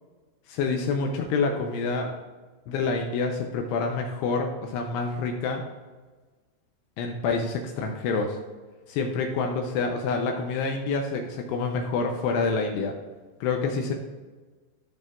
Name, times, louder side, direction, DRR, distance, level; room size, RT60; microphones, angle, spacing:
voice 1, 0.5-2.1 2.7-5.7 7.0-8.4 8.9-13.0 13.4-13.9, left 4 dB, 85° left, 3 dB, 2.5 m, -27 dB
14.5 x 5.3 x 2.4 m, 1.3 s
omnidirectional pair, 5.3 m